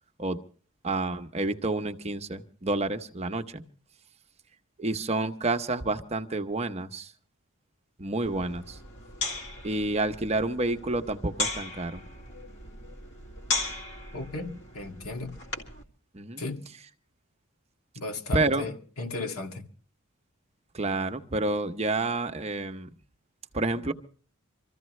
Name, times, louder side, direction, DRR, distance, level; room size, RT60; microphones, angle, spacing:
voice 1, 0.8-3.6 4.8-7.1 8.0-8.8 9.6-12.0 16.1-16.4 18.3-18.7 20.7-22.9 23.5-23.9, right 2 dB, 30° right, 0.8 m, -29 dB
sound 1, 8.3-15.8, left 3 dB, 60° left, 2.3 m, -37 dB
voice 2, 14.1-15.3 16.4-16.7 18.0-19.7, left 3 dB, 85° left, 2.1 m, -35 dB
25.5 x 14.5 x 3.2 m
head